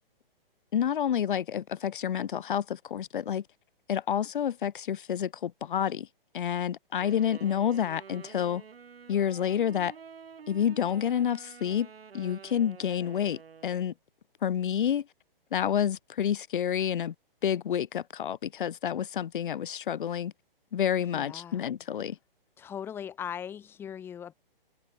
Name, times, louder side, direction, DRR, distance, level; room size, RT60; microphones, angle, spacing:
voice 1, 0.7-3.4 3.9-6.1 6.3-8.6 9.1-9.9 10.5-11.9 12.1-13.9 14.4-15.1 15.5-17.1 17.4-20.3 20.7-22.2, left 9 dB, 60° left, 0.6 m, -29 dB
Wind instrument woodwind instrument, 7.0-14.0, right 6 dB, 80° right, 3.7 m, -49 dB
voice 2, 21.0-21.6 22.6-24.3, left 8 dB, 10° left, 3.9 m, -39 dB
hypercardioid pair, 175°, 29 cm